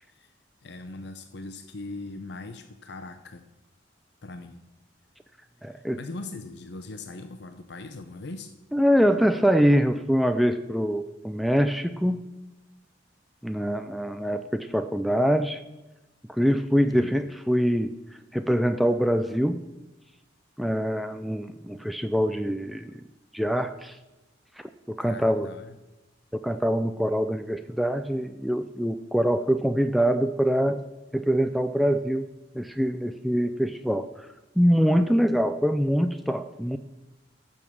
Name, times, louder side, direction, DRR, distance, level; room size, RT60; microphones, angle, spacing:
voice 1, 0.6-3.4 4.2-4.7 5.7-8.5 16.9-17.1 25.0-25.7, left 2 dB, 60° left, 8 dB, 0.7 m, -40 dB
voice 2, 5.6-6.0 8.7-12.3 13.4-15.6 16.3-17.9 18.3-19.6 20.6-22.9 23.3-24.0 24.6-25.5 26.4-30.8 31.1-32.3 32.5-34.1 34.6-36.8, equal, ahead, 8 dB, 0.4 m, -24 dB
10.5 x 7.1 x 7.2 m, 1.1 s
head